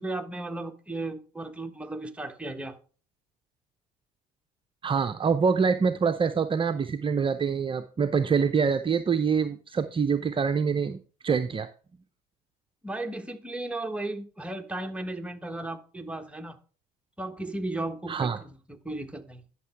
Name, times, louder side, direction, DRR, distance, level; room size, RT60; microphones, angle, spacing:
voice 1, 0.0-2.8 12.8-16.6 17.2-19.4, right 2 dB, 5° right, 1.3 m, -35 dB
voice 2, 4.8-11.7 18.1-18.4, right 6 dB, 30° right, 0.7 m, -25 dB
11.0 x 6.7 x 3.5 m
hypercardioid pair, 65°, 19 cm